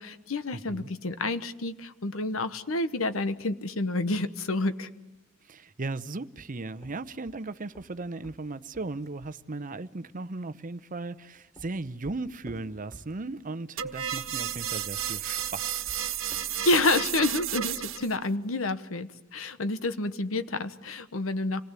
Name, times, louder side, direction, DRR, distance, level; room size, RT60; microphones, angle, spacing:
voice 1, 0.0-4.9 16.6-21.6, left 2 dB, 75° left, 1.2 m, -29 dB
voice 2, 0.5-0.9 5.4-15.8, right 3 dB, 40° right, 0.8 m, -37 dB
sound 1, 6.7-9.4 11.1-13.5 14.4-17.0, equal, 15° left, 3.3 m, -52 dB
sound 2, 13.8-18.2, right 10 dB, 70° right, 1.4 m, -32 dB
27.0 x 19.0 x 8.3 m
head